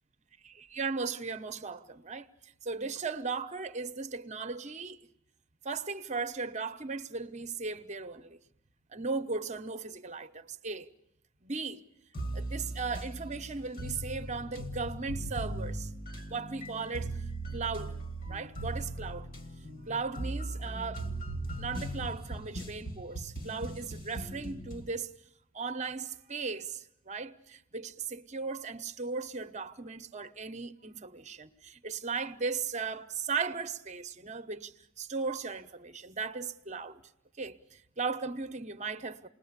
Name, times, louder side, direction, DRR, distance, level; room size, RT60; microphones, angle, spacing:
voice 1, 0.4-5.0 5.6-8.4 8.9-10.9 11.4-11.8 12.3-15.9 16.3-17.2 17.5-18.0 18.3-19.3 19.9-21.1 21.6-25.1 25.5-37.0 37.4-39.3, right 4 dB, 35° right, 1.0 m, -37 dB
sound 1, 12.1-24.9, right 1 dB, 45° left, 1.9 m, -39 dB
28.5 x 20.5 x 8.2 m
head